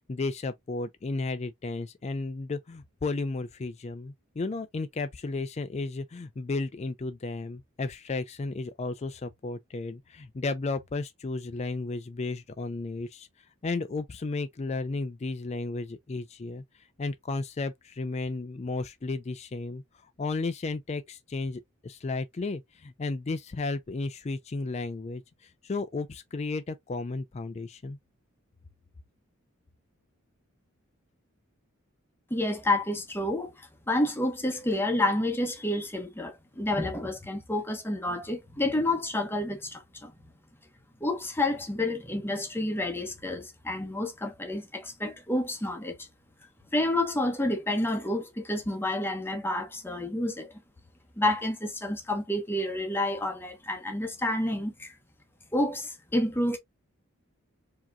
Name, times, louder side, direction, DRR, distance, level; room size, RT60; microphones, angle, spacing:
voice 1, 0.1-13.3 13.6-16.6 17.0-19.8 20.2-28.0, left 3 dB, 30° left, 0.4 m, -33 dB
voice 2, 32.3-40.1 41.0-46.1 46.7-50.5 51.2-55.0 55.5-56.6, left 1 dB, 10° left, 0.8 m, -29 dB
4.7 x 2.9 x 2.2 m
head